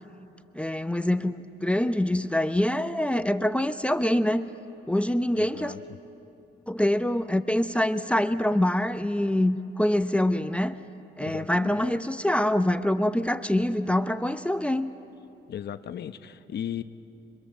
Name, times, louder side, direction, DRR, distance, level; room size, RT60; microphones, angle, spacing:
voice 1, 0.5-4.5 4.9-5.7 6.7-10.8 11.2-14.9, left 1 dB, 5° left, 10 dB, 0.7 m, -25 dB
voice 2, 5.3-5.8 11.2-11.8 15.5-16.8, left 10 dB, 60° left, 11 dB, 0.9 m, -36 dB
26.0 x 24.0 x 7.4 m, 2.8 s
cardioid pair, 80°, 19 cm